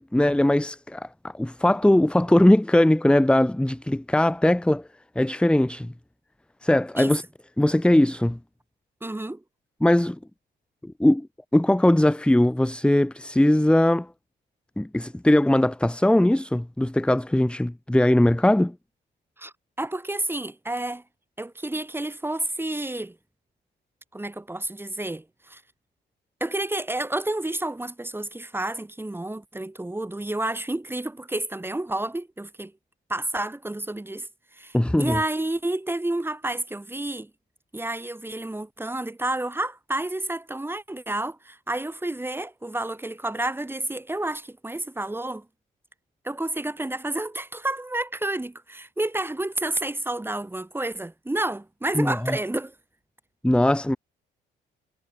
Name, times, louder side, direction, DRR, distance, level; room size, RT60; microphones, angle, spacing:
voice 1, 0.0-4.9 5.1-5.9 6.6-7.2 7.6-8.4 9.8-10.2 10.8-11.3 11.5-14.1 14.8-18.7 34.7-35.2 51.9-52.4 53.4-54.0, left 1 dB, 5° left, 1.5 m, -20 dB
voice 2, 9.0-9.4 19.4-21.0 21.4-23.2 24.1-25.6 26.4-32.7 33.1-37.3 37.7-45.5 46.2-52.7, right 1 dB, 10° right, 3.6 m, -30 dB
cardioid pair, 90°, 20 cm